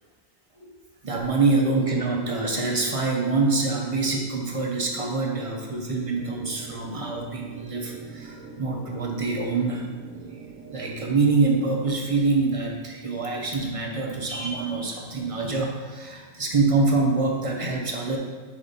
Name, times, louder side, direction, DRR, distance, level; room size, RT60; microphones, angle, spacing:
voice 1, 1.0-9.9 10.7-18.2, right 3 dB, 40° right, 0 dB, 0.5 m, -25 dB
sound 1, 6.1-11.6, right 4 dB, 80° right, 1.0 m, -42 dB
4.9 x 4.2 x 5.0 m, 1.5 s
omnidirectional pair, 1.4 m